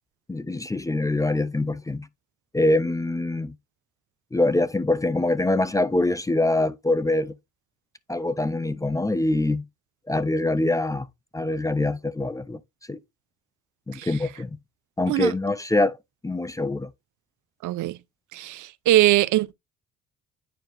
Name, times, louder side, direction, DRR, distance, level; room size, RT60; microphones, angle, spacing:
voice 1, 0.3-2.1 2.5-3.5 4.3-7.3 8.1-9.6 10.1-11.1 11.3-12.6 12.9-13.0 13.9-14.5 15.0-16.0 16.2-16.9, left 2 dB, 10° left, 0.4 m, -24 dB
voice 2, 17.6-18.0 18.3-19.5, right 15 dB, 80° right, 0.6 m, -22 dB
9.1 x 4.6 x 2.5 m
cardioid pair, 90°, 30 cm